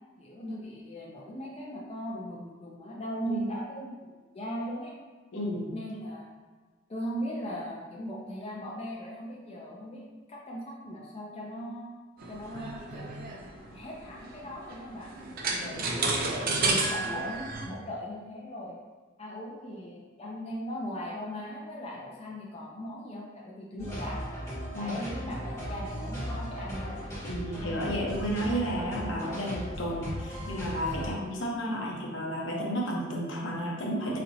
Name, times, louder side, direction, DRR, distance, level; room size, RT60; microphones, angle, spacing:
voice 1, 0.2-4.9 5.7-6.4 6.9-11.9 12.3-13.1 13.7-16.3 16.6-18.8 19.2-24.3 24.6-27.0, equal, 30° left, -4 dB, 0.5 m, -39 dB
voice 2, 5.3-5.7 15.5-15.7 23.7-23.9 24.7-25.0 27.2-34.2, equal, 70° left, -1 dB, 0.7 m, -32 dB
sound 1, 12.2-17.7, right 3 dB, 50° right, 0.5 m, -31 dB
sound 2, 23.8-31.1, equal, 15° left, 1.5 m, -37 dB
4.1 x 2.8 x 2.7 m, 1.4 s
head